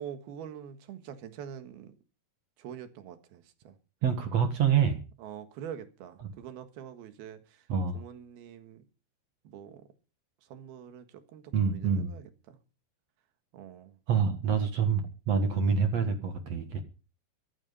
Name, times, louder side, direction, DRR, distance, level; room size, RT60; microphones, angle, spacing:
voice 1, 0.0-1.9 2.6-3.8 5.2-7.7 7.9-8.8 9.5-9.9 10.5-12.6 13.5-14.0 16.8-16.9, right 9 dB, 70° right, 3.3 m, -45 dB
voice 2, 4.0-5.0 6.2-6.3 7.7-8.0 11.5-12.1 14.1-16.8, right 6 dB, 55° right, 2.1 m, -27 dB
14.0 x 12.5 x 5.4 m
omnidirectional pair, 4.7 m